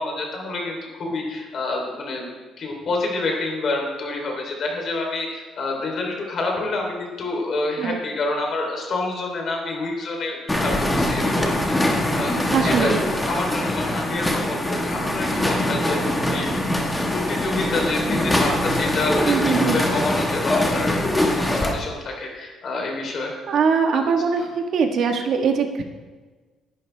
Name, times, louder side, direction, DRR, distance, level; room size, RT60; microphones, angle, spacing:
voice 1, 0.0-2.3 2.6-11.6 11.8-12.3 12.6-16.5 17.1-23.3 23.9-24.5, left 2 dB, 40° left, 1 dB, 3.2 m, -28 dB
sound 1, 10.5-21.7, left 1 dB, 10° left, 1.4 m, -23 dB
voice 2, 12.5-13.0 19.3-19.8 23.5-24.5 24.7-25.8, right 5 dB, 50° right, 4 dB, 1.4 m, -21 dB
19.0 x 11.5 x 3.3 m, 1.4 s
cardioid pair, 170°, 0 cm